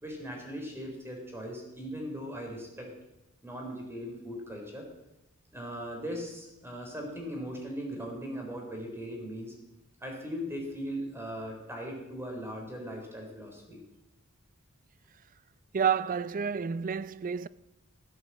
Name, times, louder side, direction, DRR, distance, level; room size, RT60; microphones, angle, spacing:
voice 1, 0.0-2.9 3.4-4.9 5.5-9.6 10.0-13.8, equal, 10° right, 3.8 m, -39 dB
voice 2, 15.7-17.5, right 7 dB, 40° right, 0.4 m, -29 dB
16.0 x 8.0 x 7.4 m
head